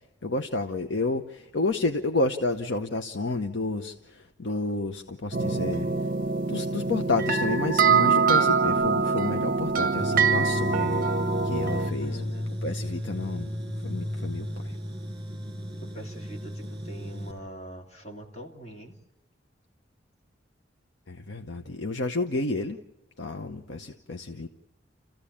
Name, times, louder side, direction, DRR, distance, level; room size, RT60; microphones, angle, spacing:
voice 1, 0.2-5.9 6.5-11.0 11.4-12.3 12.6-13.5 13.8-14.8 21.1-22.8 23.2-24.5, left 3 dB, 75° left, 6 dB, 0.9 m, -30 dB
sound 1, 5.3-11.9, right 5 dB, 50° right, 0.7 m, -24 dB
Tools, 10.0-17.3, equal, 25° right, 5.9 m, -34 dB
voice 2, 12.0-12.6 15.9-19.0, right 1 dB, 35° left, 2 dB, 2.8 m, -43 dB
29.0 x 15.5 x 8.6 m, 0.97 s
head